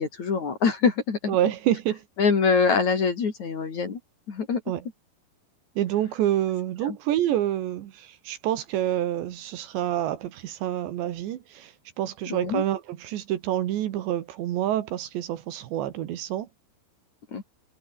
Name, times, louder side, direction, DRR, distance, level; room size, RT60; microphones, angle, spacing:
voice 1, 0.0-1.4 2.2-4.0 4.3-4.6 6.8-7.0 12.3-12.6 17.3-17.4, left 5 dB, 40° left, 3.9 m, -24 dB
voice 2, 1.3-2.0 4.7-4.8 5.8-16.5, right 12 dB, 70° right, 3.6 m, -27 dB
omnidirectional pair, 5.5 m